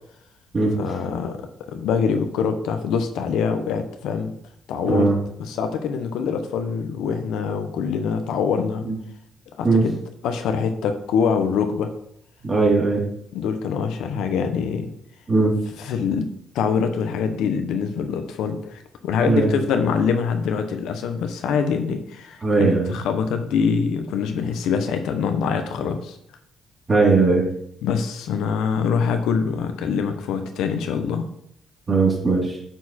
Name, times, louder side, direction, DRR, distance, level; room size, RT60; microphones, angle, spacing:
voice 1, 0.7-1.4 1.7-4.3 4.7-5.1 5.4-8.8 9.6-10.0 10.2-11.9 13.3-14.9 15.8-16.3 16.5-26.2 27.8-31.2, left 6 dB, 85° left, 7 dB, 0.9 m, -24 dB
voice 2, 12.4-13.0 15.3-15.5 19.2-19.5 22.4-22.9 26.9-27.4 31.9-32.6, right 3 dB, 30° right, -2 dB, 2.8 m, -18 dB
9.0 x 4.6 x 4.3 m, 0.73 s
cardioid pair, 90°, 0 cm